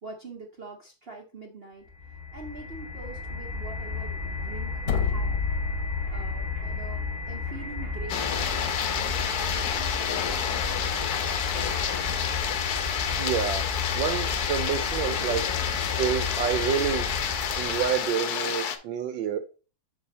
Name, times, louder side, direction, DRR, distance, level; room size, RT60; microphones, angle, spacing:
voice 1, 0.0-5.4 5.8-10.8, right 3 dB, 50° right, 0.7 m, -44 dB
sound 1, 1.9-18.1, left 4 dB, 30° right, 1.2 m, -33 dB
sound 2, 4.8-6.9, left 5 dB, 85° left, 1.6 m, -29 dB
sound 3, 8.1-18.8, left 8 dB, 65° left, 1.1 m, -29 dB
voice 2, 13.2-13.7 13.9-15.4 16.0-17.1 17.6-19.4, right 8 dB, 75° right, 1.3 m, -28 dB
5.5 x 4.8 x 4.0 m
omnidirectional pair, 2.2 m